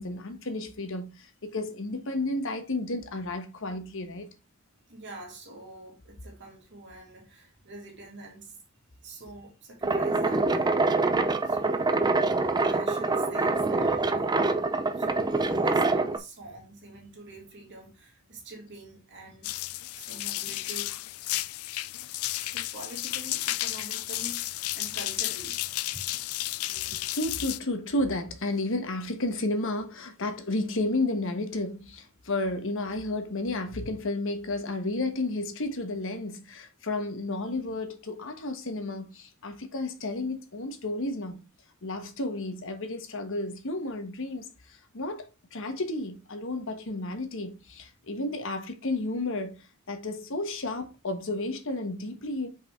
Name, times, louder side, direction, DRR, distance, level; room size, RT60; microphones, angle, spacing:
voice 1, 0.0-4.3 26.7-41.4 41.8-49.6 49.9-52.5, left 2 dB, 65° left, 1.2 m, -32 dB
voice 2, 4.9-8.6 9.0-10.9 11.4-12.0 12.7-14.5 14.9-19.5 19.9-20.9 22.4-25.6 25.9-26.0, right 2 dB, 55° right, 2.4 m, -45 dB
sound 1, 9.8-16.2, right 3 dB, 20° right, 0.5 m, -25 dB
sound 2, 19.4-27.6, left 16 dB, 80° left, 0.4 m, -33 dB
5.7 x 4.9 x 3.6 m
head